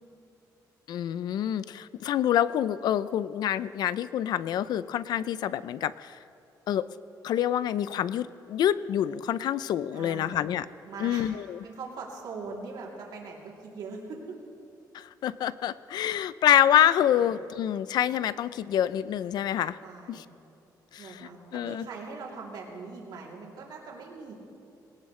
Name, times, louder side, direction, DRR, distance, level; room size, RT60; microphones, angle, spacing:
voice 1, 0.9-6.2 6.7-6.9 7.2-10.7 11.0-11.6 14.9-19.8 20.1-20.2 20.9-21.9, left 10 dB, 70° left, 16 dB, 0.4 m, -27 dB
voice 2, 9.9-10.5 10.9-11.3 11.6-14.4 17.2-17.3 19.8-20.3 21.0-24.3, right 4 dB, 70° right, -2 dB, 3.1 m, -41 dB
21.0 x 18.5 x 3.2 m, 2.6 s
cardioid pair, 175°, 7 cm